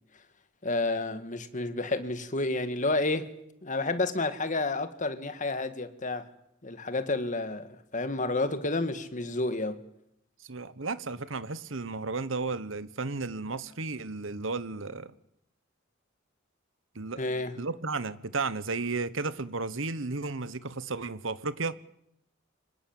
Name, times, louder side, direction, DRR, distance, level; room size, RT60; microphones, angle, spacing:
voice 1, 0.6-3.3 3.6-6.3 6.6-9.8 17.2-17.6, left 2 dB, 40° left, 1.8 m, -30 dB
voice 2, 10.4-15.1 16.9-17.2 17.6-21.7, right 3 dB, 70° right, 1.2 m, -33 dB
25.0 x 20.0 x 8.9 m
head